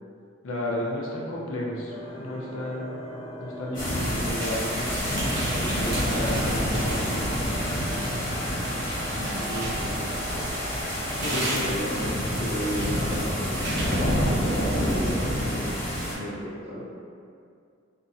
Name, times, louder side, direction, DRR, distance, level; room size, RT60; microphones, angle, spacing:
voice 1, 0.4-2.9 3.4-7.6 9.3-10.0 11.1-12.0, left 1 dB, 90° left, -4 dB, 0.5 m, -33 dB
sound 1, 1.9-11.6, equal, 25° left, 0.3 m, -39 dB
sound 2, 3.7-16.1, equal, 45° left, 1.2 m, -28 dB
sound 3, 4.3-7.3 7.6-9.9 10.6-15.0, right 1 dB, 65° right, 0.9 m, -36 dB
voice 2, 9.1-10.0 11.3-13.6 14.3-15.8 16.1-16.8, equal, 35° right, -7 dB, 0.6 m, -34 dB
2.6 x 2.0 x 2.5 m, 2.3 s
head